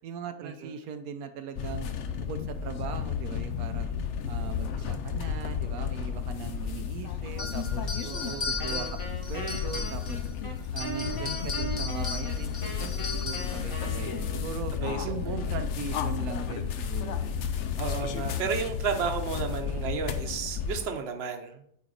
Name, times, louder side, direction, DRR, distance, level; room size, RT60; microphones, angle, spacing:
voice 1, 0.0-1.9 2.1-3.9 4.3-7.9 8.3-10.3 10.7-14.7 15.0-17.3, right 7 dB, 85° right, 8 dB, 1.1 m, -39 dB
sound 1, 1.6-20.9, left 7 dB, 65° left, 0.9 m, -32 dB
sound 2, 7.4-10.3 10.6-13.6, left 4 dB, 40° left, 1.7 m, -37 dB
voice 2, 8.0-8.5 14.8-15.0 17.8-21.6, right 6 dB, 50° right, 5 dB, 1.1 m, -32 dB
Wind instrument woodwind instrument, 8.6-14.6, right 1 dB, 25° left, 1.2 m, -39 dB
9.0 x 4.3 x 4.1 m, 0.67 s
omnidirectional pair, 1.5 m